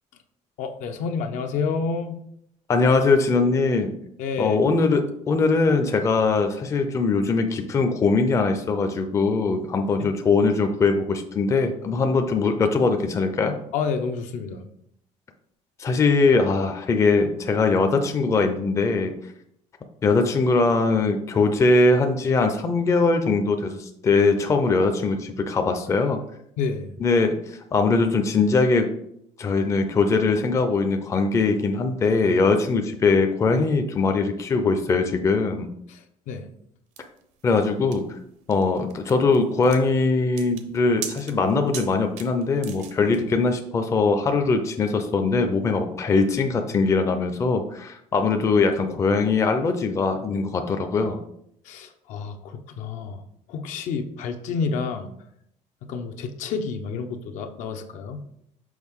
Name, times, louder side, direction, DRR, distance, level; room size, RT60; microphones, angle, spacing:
voice 1, 0.6-2.2 4.2-4.6 10.0-10.1 13.7-14.7 26.6-26.9 35.9-36.5 51.6-53.2 53.5-55.1 55.8-58.3, left 5 dB, 70° left, 6 dB, 0.8 m, -29 dB
voice 2, 2.7-4.0 4.4-13.5 15.8-19.1 20.0-26.2 27.0-28.9 29.4-35.7 37.4-38.2 38.5-51.2, left 3 dB, 25° left, 6 dB, 0.5 m, -21 dB
sound 1, 37.0-43.2, right 8 dB, 60° right, 0.7 m, -40 dB
6.3 x 5.2 x 3.6 m, 0.73 s
cardioid pair, 165°, 13 cm